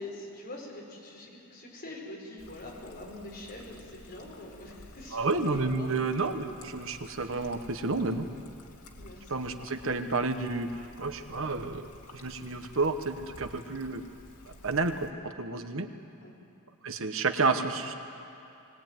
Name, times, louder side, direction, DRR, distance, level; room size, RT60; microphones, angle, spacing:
voice 1, 0.0-6.1 9.0-9.3 16.2-16.3, left 1 dB, 45° left, -2 dB, 5.4 m, -44 dB
Trickle dribble, 2.4-15.1, left 1 dB, 90° left, 2.3 m, -52 dB
voice 2, 5.1-8.3 9.3-14.0 14.4-15.9 16.8-17.9, right 3 dB, 60° right, 7 dB, 1.2 m, -30 dB
22.0 x 19.0 x 9.3 m, 2.7 s
head